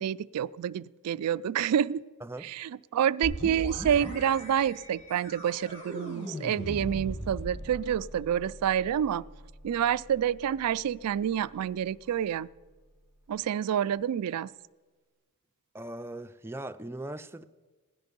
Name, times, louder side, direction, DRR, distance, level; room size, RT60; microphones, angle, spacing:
voice 1, 0.0-2.0 2.4-9.2 9.6-12.5 13.3-14.5, right 9 dB, 90° right, 0.3 m, -28 dB
sound 1, 3.2-12.8, equal, 30° left, 5.9 m, -41 dB
voice 2, 15.7-17.4, right 1 dB, 10° right, 0.4 m, -39 dB
16.5 x 11.0 x 5.2 m
head